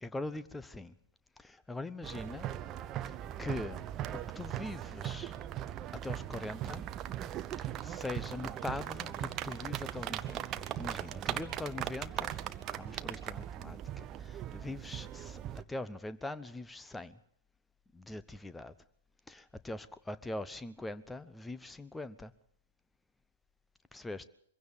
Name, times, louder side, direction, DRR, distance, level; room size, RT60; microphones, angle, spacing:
voice 1, 0.0-0.9 1.4-2.5 3.1-3.9 4.1-5.4 6.0-6.9 7.6-12.4 12.7-15.4 15.7-17.2 17.9-18.7 19.3-22.3 23.9-24.3, left 2 dB, 5° left, 14 dB, 0.8 m, -42 dB
sound 1, 2.0-15.6, right 11 dB, 25° right, 0.8 m, -39 dB
23.5 x 16.0 x 6.9 m, 0.68 s
figure-of-eight pair, 105°, 0 cm